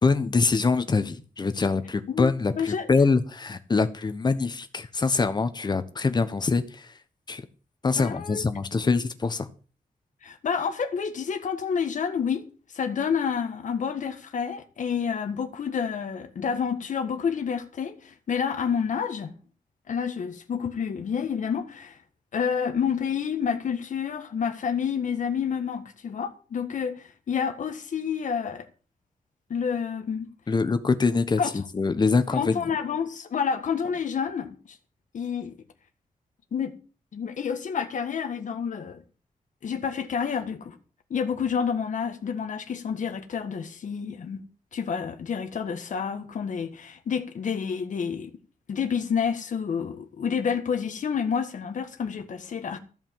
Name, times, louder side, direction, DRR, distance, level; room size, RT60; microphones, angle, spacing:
voice 1, 0.0-6.9 7.3-7.4 7.8-9.5 30.5-32.6, left 4 dB, 30° left, 1.2 m, -24 dB
voice 2, 2.6-2.9 7.9-8.4 10.2-12.4 12.7-19.3 19.9-22.0 22.3-28.7 29.5-30.3 31.4-31.5 32.3-34.6 35.1-35.6 36.5-36.8 37.1-39.0 39.6-40.7 41.1-44.4 44.7-48.3 48.7-52.8, left 6 dB, 65° left, 1.6 m, -29 dB
14.5 x 5.4 x 9.2 m
wide cardioid pair, 165°, 14 cm